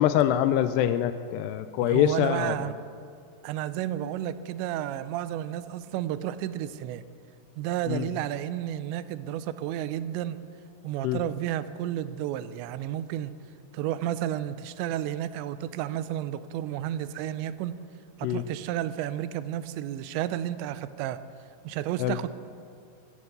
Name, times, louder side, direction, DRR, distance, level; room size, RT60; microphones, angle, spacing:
voice 1, 0.0-2.5 7.9-8.1 11.0-11.2 18.2-18.4 22.0-22.2, left 11 dB, 85° left, 11 dB, 2.5 m, -24 dB
voice 2, 1.8-2.7 3.4-7.0 7.6-10.4 10.8-13.3 13.7-17.7 18.2-21.2 21.6-22.3, right 12 dB, 90° right, 14 dB, 2.9 m, -32 dB
17.0 x 10.5 x 6.7 m, 2.4 s
omnidirectional pair, 5.0 m